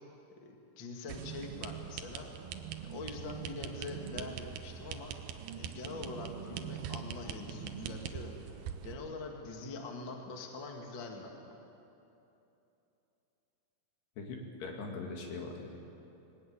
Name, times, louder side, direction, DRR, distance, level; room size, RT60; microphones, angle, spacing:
voice 1, 0.4-2.3 2.8-5.2 5.6-8.3 8.8-11.5, left 3 dB, 40° left, 2 dB, 1.7 m, -44 dB
sound 1, 1.1-8.9, right 9 dB, 75° right, 2.3 m, -42 dB
voice 2, 14.2-15.8, left 3 dB, 65° left, 1 dB, 4.2 m, -41 dB
21.0 x 18.5 x 8.7 m, 2.9 s
omnidirectional pair, 5.3 m